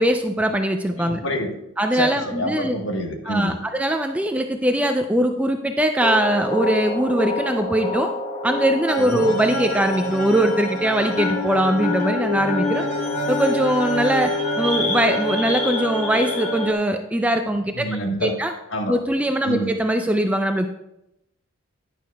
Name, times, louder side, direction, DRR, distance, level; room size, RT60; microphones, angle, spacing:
voice 1, 0.0-1.2 1.8-2.8 3.3-8.1 8.4-12.8 13.3-17.9 18.2-18.5 18.9-20.7, right 1 dB, 5° right, 5 dB, 0.4 m, -21 dB
voice 2, 1.0-1.6 1.9-3.6 9.0-9.3 17.7-18.3 18.7-19.0 19.4-19.7, equal, 55° left, 3 dB, 1.3 m, -27 dB
sound 1, 6.0-16.7, left 1 dB, 35° left, 1.1 m, -26 dB
11.0 x 10.5 x 2.3 m, 0.86 s
head